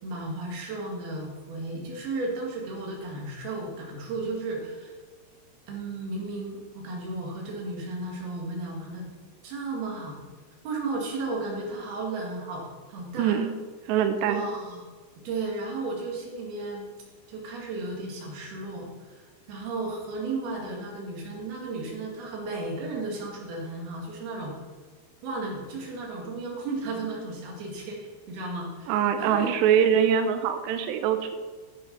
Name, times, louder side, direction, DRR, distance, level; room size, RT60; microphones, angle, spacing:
voice 1, 0.0-4.9 5.7-9.0 9.4-10.2 10.6-13.4 14.3-14.8 15.2-16.9 17.3-24.5 25.2-28.0 28.3-29.5, right 3 dB, 60° right, -1 dB, 3.7 m, -34 dB
voice 2, 13.2-13.5 13.9-14.4 28.9-31.4, right 8 dB, 85° right, 8 dB, 2.5 m, -23 dB
10.5 x 7.6 x 5.4 m, 1.4 s
omnidirectional pair, 5.5 m